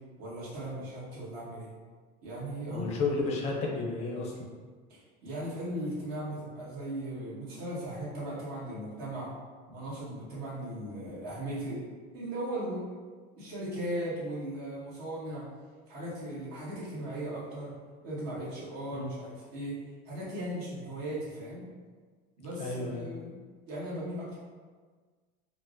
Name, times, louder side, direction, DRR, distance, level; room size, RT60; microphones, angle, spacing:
voice 1, 0.2-1.7 2.2-2.9 4.9-9.3 9.7-11.8 12.1-13.0 13.4-15.5 15.9-17.7 18.0-19.8 20.0-21.7 22.4-24.4, right 1 dB, 50° right, -8 dB, 1.3 m, -37 dB
voice 2, 2.7-4.3 18.9-19.1 22.6-23.1, left 3 dB, 35° left, -1 dB, 0.6 m, -32 dB
4.4 x 2.1 x 2.5 m, 1.5 s
cardioid pair, 160°, 20 cm